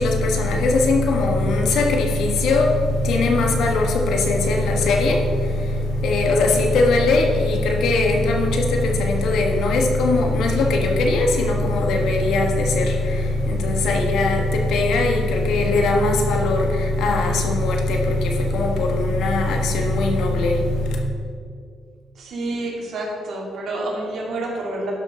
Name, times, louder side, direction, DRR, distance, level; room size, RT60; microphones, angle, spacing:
voice 1, 0.0-21.0, left 2 dB, 80° left, 2 dB, 1.4 m, -20 dB
voice 2, 22.2-24.9, right 2 dB, 65° right, -2 dB, 2.6 m, -28 dB
12.0 x 6.0 x 4.4 m, 2.3 s
cardioid pair, 90°, 0 cm